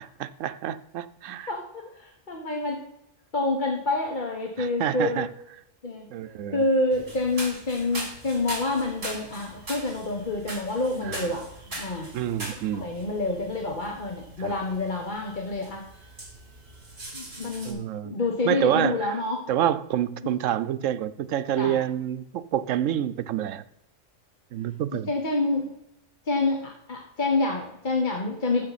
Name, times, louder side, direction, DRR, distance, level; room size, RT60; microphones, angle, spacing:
voice 1, 0.2-1.5 4.6-5.3 6.1-6.6 11.0-11.3 12.1-12.9 14.4-14.5 17.6-18.1 18.5-19.1 19.5-23.6 24.5-25.1, right 10 dB, 80° right, 13 dB, 1.0 m, -28 dB
voice 2, 1.5-2.8 3.3-5.3 5.8-6.1 6.5-12.1 12.7-15.9 17.1-19.4 21.6-21.8 24.9-25.7 26.3-28.7, left 2 dB, 40° left, 1 dB, 1.3 m, -28 dB
sound 1, 6.9-17.7, right 1 dB, 55° right, 3.3 m, -41 dB
14.5 x 6.6 x 4.1 m, 0.81 s
omnidirectional pair, 1.3 m